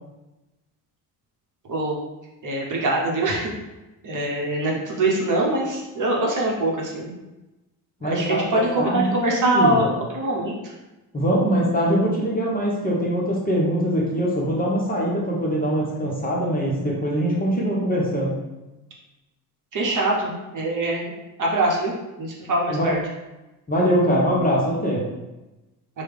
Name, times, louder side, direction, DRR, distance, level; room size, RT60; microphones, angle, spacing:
voice 1, 2.4-3.5 4.0-7.1 8.0-10.7 19.7-21.9 22.2-23.0, right 1 dB, 40° right, -3 dB, 1.0 m, -23 dB
voice 2, 8.0-9.7 11.1-18.3 22.7-22.9 23.7-25.0, equal, 20° left, -4 dB, 0.9 m, -23 dB
3.2 x 2.3 x 3.5 m, 1.0 s
hypercardioid pair, 55°, 50 cm